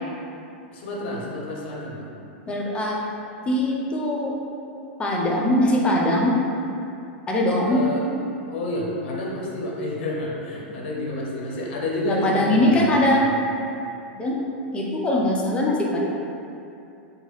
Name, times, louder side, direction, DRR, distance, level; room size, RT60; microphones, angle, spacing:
voice 1, 0.7-2.1 7.7-8.1 8.5-13.3, left 1 dB, 65° left, -3 dB, 0.7 m, -29 dB
voice 2, 2.5-3.0 3.5-4.3 5.0-6.3 7.3-7.8 12.0-13.2 14.1-14.4 14.7-16.0, left 1 dB, 20° left, -2 dB, 0.5 m, -21 dB
2.9 x 2.3 x 3.1 m, 2.7 s
hypercardioid pair, 115°, 6 cm